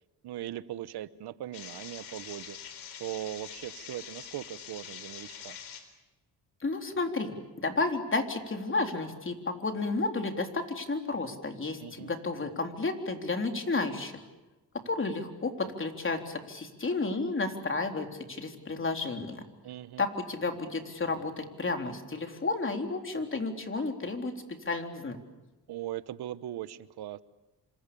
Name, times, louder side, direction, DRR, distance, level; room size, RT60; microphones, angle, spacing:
voice 1, 0.2-2.6 3.0-5.6 11.8-12.1 19.6-20.0 25.7-27.2, right 13 dB, 80° right, 15 dB, 1.2 m, -39 dB
sound 1, 1.5-5.8, left 8 dB, 85° left, 4.0 m, -45 dB
voice 2, 6.6-14.2 14.9-19.4 20.0-24.3 24.6-25.2, left 3 dB, 30° left, 4 dB, 3.8 m, -32 dB
28.0 x 26.5 x 7.0 m, 1.1 s
cardioid pair, 90°, 39 cm